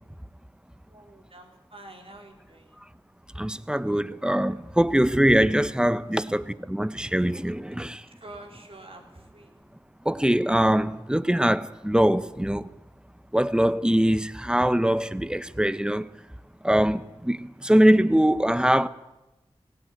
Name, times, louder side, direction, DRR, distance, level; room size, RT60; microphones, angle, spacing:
voice 1, 0.9-2.7 6.1-6.3 8.0-9.6, right 2 dB, 60° right, 4.1 m, -47 dB
voice 2, 3.4-8.0 10.0-12.7 13.3-16.1 16.6-18.9, equal, 10° right, 0.9 m, -22 dB
18.0 x 17.5 x 9.2 m
cardioid pair, 45°, 11 cm